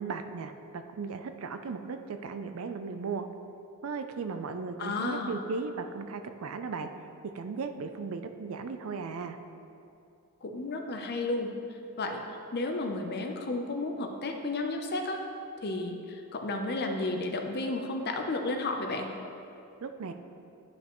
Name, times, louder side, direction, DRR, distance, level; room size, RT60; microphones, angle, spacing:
voice 1, 0.0-3.3 3.8-6.9 7.3-9.4 19.8-20.1, right 4 dB, 65° right, 8 dB, 0.4 m, -36 dB
voice 2, 4.8-5.4 10.4-11.5 12.0-12.2 12.5-15.2 15.6-19.1, left 2 dB, 45° left, 4 dB, 0.6 m, -32 dB
11.0 x 5.2 x 3.0 m, 2.7 s
head